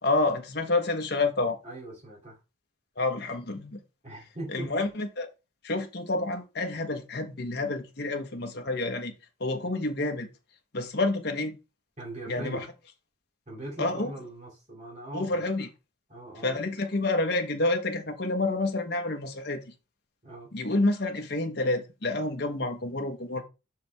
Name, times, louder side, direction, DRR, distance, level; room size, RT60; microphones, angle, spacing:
voice 1, 0.0-1.6 3.0-3.8 4.5-5.3 5.6-9.1 9.4-10.3 10.7-11.6 12.3-12.7 13.8-14.1 15.1-15.7 16.4-19.6 20.5-23.4, left 2 dB, 50° left, 1.1 m, -28 dB
voice 2, 1.6-2.4 4.0-4.7 12.0-12.7 13.5-15.5 16.1-16.6 20.2-20.5, right 2 dB, 35° right, 2.5 m, -40 dB
5.9 x 4.8 x 3.5 m
head